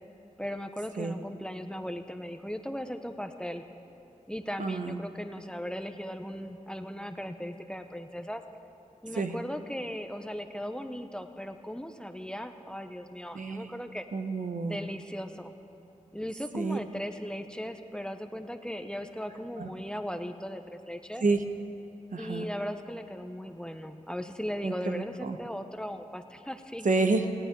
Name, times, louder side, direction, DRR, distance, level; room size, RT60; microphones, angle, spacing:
voice 1, 0.4-3.6 4.3-8.4 9.0-14.1 14.6-15.5 16.1-21.2 22.2-26.9, equal, 5° left, 7 dB, 0.8 m, -37 dB
voice 2, 4.6-5.0 9.1-9.4 13.3-13.7 14.1-14.8 16.5-16.8 19.6-19.7 21.2-21.4 22.1-22.5 24.6-25.4 26.8-27.4, right 3 dB, 70° right, 6 dB, 0.9 m, -29 dB
18.0 x 17.5 x 3.8 m, 2.8 s
wide cardioid pair, 60°, 14 cm